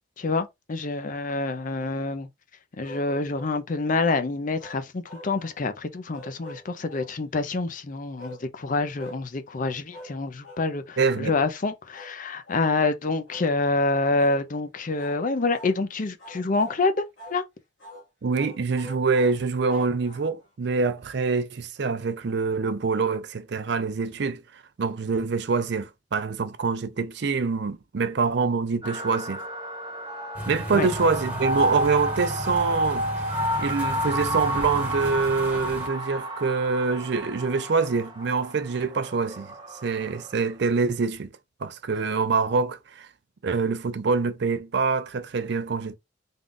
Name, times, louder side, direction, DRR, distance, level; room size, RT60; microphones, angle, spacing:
voice 1, 0.2-2.3 2.8-17.0 17.3-17.4 30.7-30.9, left 3 dB, 45° left, 0.5 m, -27 dB
sound 1, 2.8-3.6 4.6-5.6 6.1-7.1 8.2-8.4 9.0-9.2 9.9-10.2 10.4-10.7 11.0-11.3 11.9-12.2 12.5-12.7 13.3-13.5 14.2-14.4 14.9-15.2 15.5-15.8 16.2-16.8 17.2-17.4 17.8-18.1 18.3-20.5, left 1 dB, 80° left, 1.6 m, -44 dB
voice 2, 11.0-11.3 18.2-24.4 24.8-29.4 30.5-33.1 33.6-39.5 39.8-41.3 41.6-43.1 43.4-46.0, right 4 dB, 60° right, 0.5 m, -25 dB
sound 2, 28.8-40.5, equal, 25° right, 0.7 m, -31 dB
sound 3, 30.3-35.9, right 1 dB, 10° right, 1.1 m, -35 dB
3.6 x 2.4 x 3.7 m
head